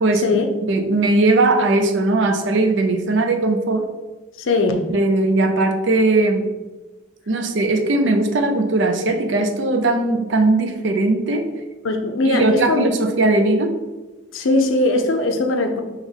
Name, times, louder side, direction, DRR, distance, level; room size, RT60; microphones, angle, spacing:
voice 1, 0.0-0.4 0.7-3.9 4.9-6.5 7.3-11.5 12.3-13.7, right 2 dB, 65° right, 6 dB, 0.5 m, -19 dB
voice 2, 4.4-4.9 11.8-12.9 14.3-15.8, left 2 dB, 75° left, 5 dB, 0.5 m, -19 dB
3.5 x 3.0 x 3.6 m, 1.2 s
head